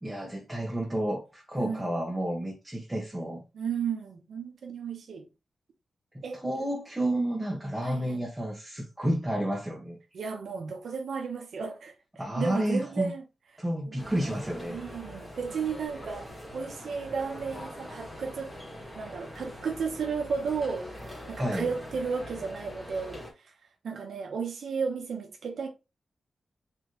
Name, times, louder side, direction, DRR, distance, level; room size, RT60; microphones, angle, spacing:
voice 1, 0.0-3.4 6.1-10.0 12.2-13.1 13.6-14.8 21.4-21.7, right 1 dB, 15° right, 1.3 m, -31 dB
voice 2, 1.6-2.0 3.5-5.3 6.2-6.6 7.8-8.2 10.1-13.2 13.9-14.0 14.7-16.3 16.5-18.5 19.0-23.5 23.8-25.7, right 5 dB, 80° right, 0.8 m, -34 dB
sound 1, 14.0-23.3, equal, 15° left, 1.8 m, -43 dB
4.1 x 3.2 x 3.2 m
cardioid pair, 80°, 0 cm